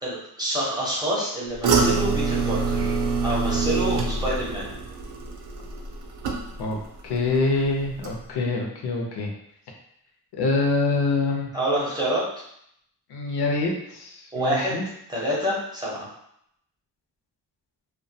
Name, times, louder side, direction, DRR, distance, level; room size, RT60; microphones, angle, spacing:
voice 1, 0.0-2.9 3.2-4.7 11.5-12.2 14.3-14.8 15.1-16.1, right 1 dB, 10° right, -7 dB, 0.5 m, -27 dB
sound 1, 1.6-6.8 7.2-7.6 8.0-8.1, right 4 dB, 85° right, 0.5 m, -25 dB
voice 2, 7.0-9.3 10.3-11.5 13.1-14.8, left 3 dB, 75° left, 1 dB, 0.6 m, -25 dB
2.2 x 2.2 x 2.6 m, 0.73 s
wide cardioid pair, 170°, 40 cm